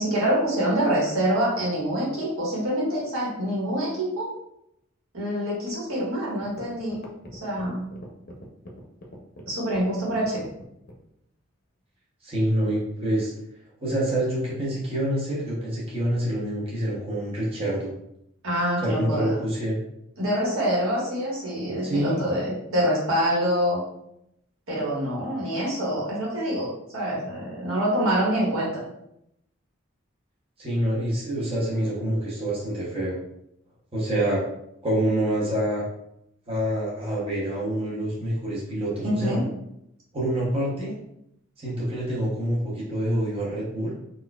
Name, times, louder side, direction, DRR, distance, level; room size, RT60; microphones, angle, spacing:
voice 1, 0.0-4.3 5.1-7.0 7.3-7.8 9.5-10.4 18.4-19.3 20.2-23.8 24.7-28.7 39.0-39.4, equal, 85° right, -5 dB, 1.4 m, -25 dB
sound 1, 6.0-6.1 6.4-11.1, equal, 45° left, 0.6 m, -43 dB
voice 2, 12.2-13.3 13.8-17.9 18.8-19.8 21.8-22.2 30.6-33.2 33.9-34.4 34.8-35.8 36.5-39.4 40.1-40.9 41.6-43.9, right 1 dB, 25° right, -6 dB, 0.8 m, -26 dB
4.1 x 2.5 x 2.3 m, 0.79 s
head